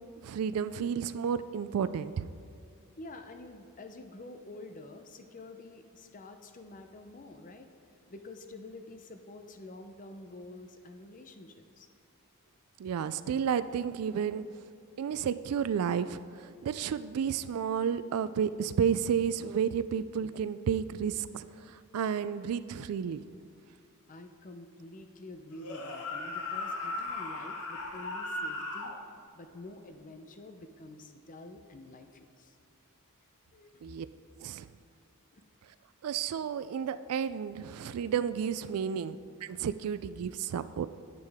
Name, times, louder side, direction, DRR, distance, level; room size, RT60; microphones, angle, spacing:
voice 1, 0.2-2.3 12.8-14.4 15.0-23.2 33.8-34.1 34.4-34.7 36.0-40.9, right 7 dB, 75° right, 14 dB, 0.3 m, -32 dB
voice 2, 3.0-7.7 8.1-11.9 24.1-28.9 29.3-32.6 33.5-33.8 35.3-35.5, left 2 dB, 35° left, 7 dB, 0.6 m, -48 dB
sound 1, 25.5-29.0, left 2 dB, 85° left, 1.0 m, -37 dB
9.6 x 8.4 x 3.5 m, 2.4 s
head